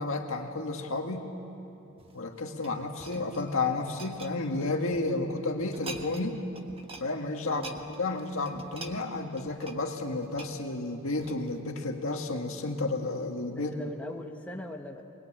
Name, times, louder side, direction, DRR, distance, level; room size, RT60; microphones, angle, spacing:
voice 1, 0.0-1.3 2.1-6.4 7.0-7.6 8.0-13.9, left 2 dB, 70° left, 3 dB, 2.0 m, -32 dB
sound 1, 1.9-5.1 5.6-6.3 6.5-7.1 7.4-11.6 12.2-12.4, right 2 dB, 25° right, 1.4 m, -46 dB
voice 2, 7.4-7.8 13.7-15.0, left 1 dB, 5° left, 1 dB, 1.2 m, -41 dB
22.0 x 21.5 x 8.9 m, 2.8 s
head